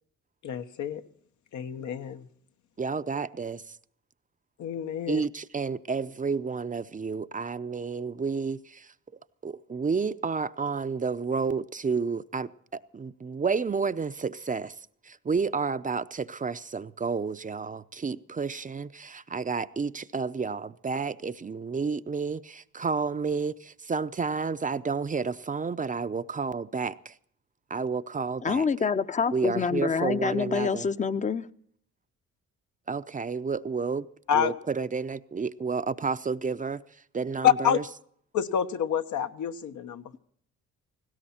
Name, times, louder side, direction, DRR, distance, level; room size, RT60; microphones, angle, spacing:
voice 1, 0.4-1.0 1.5-2.3 4.6-5.2 34.3-34.5 37.4-37.8 38.3-40.0, left 9 dB, 75° left, 1.3 m, -27 dB
voice 2, 2.8-3.6 5.1-8.9 9.4-14.8 15.0-27.1 27.7-28.7 29.3-30.9 32.9-34.1 34.3-36.8 37.1-37.8, right 5 dB, 25° right, 0.6 m, -31 dB
voice 3, 28.4-31.5, left 5 dB, 25° left, 0.8 m, -26 dB
19.0 x 16.5 x 4.3 m
cardioid pair, 90°, 30 cm